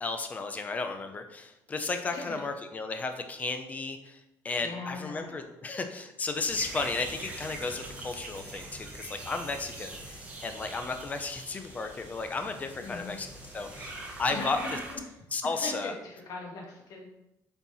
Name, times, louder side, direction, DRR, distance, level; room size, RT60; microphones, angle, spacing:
voice 1, 0.0-14.8 15.3-15.9, left 3 dB, 20° left, 7 dB, 0.6 m, -34 dB
voice 2, 2.1-2.4 4.6-5.4 12.8-13.2 14.3-15.0 15.5-17.1, left 3 dB, 55° left, -1 dB, 1.8 m, -40 dB
sound 1, 6.4-14.9, right 2 dB, 20° right, 1.2 m, -43 dB
7.4 x 4.5 x 4.2 m, 0.90 s
cardioid pair, 165°, 7 cm